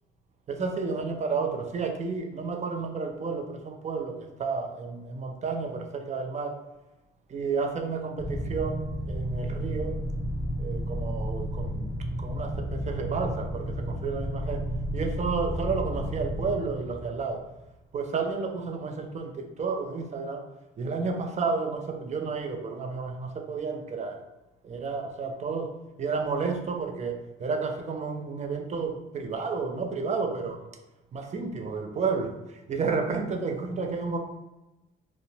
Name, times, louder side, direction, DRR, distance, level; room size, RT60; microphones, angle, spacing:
voice 1, 0.5-6.6 7.3-10.0 10.6-11.9 12.2-14.7 14.9-17.4 17.9-20.4 20.8-24.2 24.6-30.6 31.1-32.4 32.7-34.2, right 4 dB, 35° right, 4 dB, 0.4 m, -31 dB
sound 1, 8.2-17.8, equal, 30° left, 0.4 m, -32 dB
2.5 x 2.0 x 2.8 m, 1.0 s
cardioid pair, 90°, 20 cm